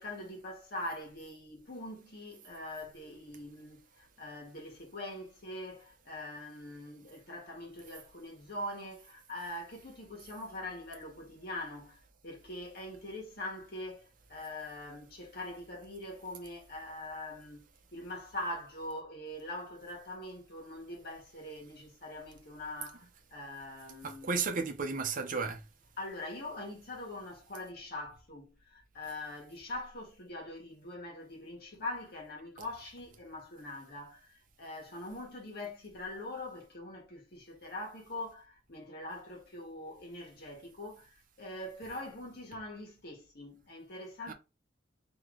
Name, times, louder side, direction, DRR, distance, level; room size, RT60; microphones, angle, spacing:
voice 1, 0.0-24.3 26.0-44.3, left 1 dB, 55° left, 1.4 m, -43 dB
voice 2, 24.0-25.6 44.3-44.4, right 4 dB, 45° right, 0.7 m, -33 dB
3.8 x 2.9 x 3.1 m
head